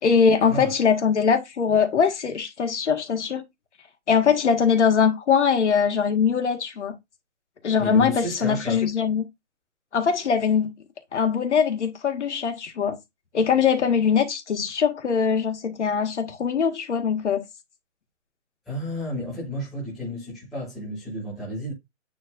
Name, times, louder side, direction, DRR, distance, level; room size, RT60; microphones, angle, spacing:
voice 1, 0.0-3.5 4.1-7.0 7.6-9.2 9.9-10.7 11.1-13.0 13.3-17.4, left 6 dB, 65° left, 2.0 m, -22 dB
voice 2, 7.8-8.8 18.7-21.7, equal, ahead, 0.4 m, -31 dB
9.7 x 3.8 x 2.7 m
hypercardioid pair, 175°, 38 cm